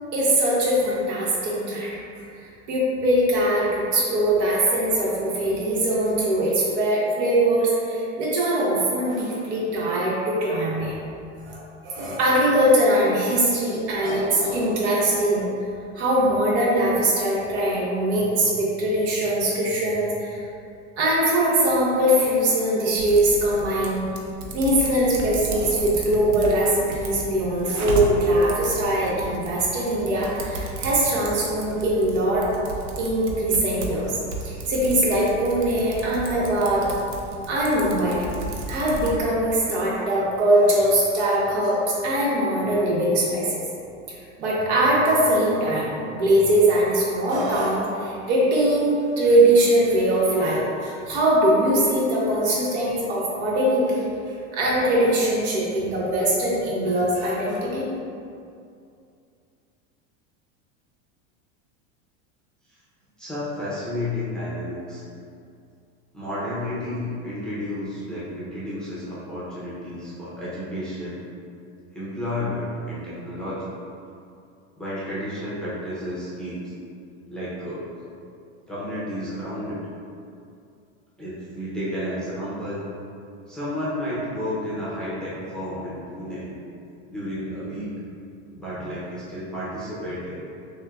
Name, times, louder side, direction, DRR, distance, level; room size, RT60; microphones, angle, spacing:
voice 1, 0.1-1.9 2.4-11.0 11.5-15.5 16.0-20.4 21.0-24.0 24.5-32.5 33.0-34.2 34.4-36.9 37.5-38.3 38.7-43.6 44.1-54.0 54.5-57.9, right 1 dB, 70° right, -5 dB, 1.2 m, -22 dB
Typing, 23.0-39.2, right 2 dB, 90° right, 0.7 m, -34 dB
voice 2, 63.2-65.0 66.1-71.2 71.9-73.8 74.8-76.6 77.3-77.8 78.7-79.8 81.2-82.8 83.5-86.5 87.1-87.9 88.5-90.4, left 1 dB, ahead, -10 dB, 0.6 m, -31 dB
6.3 x 2.2 x 2.4 m, 2.5 s
supercardioid pair, 145°, 35 cm